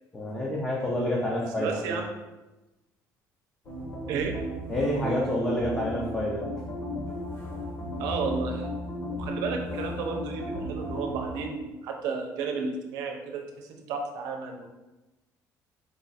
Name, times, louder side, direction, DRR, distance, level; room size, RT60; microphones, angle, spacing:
voice 1, 0.1-2.0 4.7-6.4, left 1 dB, 15° left, -4 dB, 0.5 m, -28 dB
voice 2, 1.6-2.0 4.1-4.6 8.0-8.7 9.1-14.7, right 5 dB, 80° right, 3 dB, 0.7 m, -32 dB
sound 1, 3.6-11.4, equal, 40° left, 1.1 m, -35 dB
4.7 x 2.4 x 4.0 m, 1.1 s
cardioid pair, 180°, 6 cm